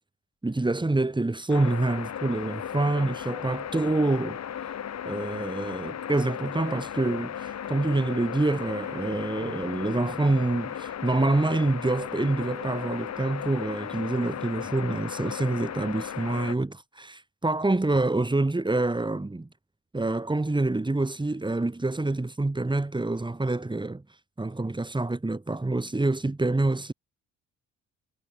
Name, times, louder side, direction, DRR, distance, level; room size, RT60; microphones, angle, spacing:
voice 1, 0.4-4.4 5.0-19.5 19.9-24.0 24.4-26.9, right 2 dB, 15° right, 5.5 m, -26 dB
sound 1, 1.5-16.5, left 9 dB, 60° left, 5.6 m, -36 dB
cardioid pair, 90°, 30 cm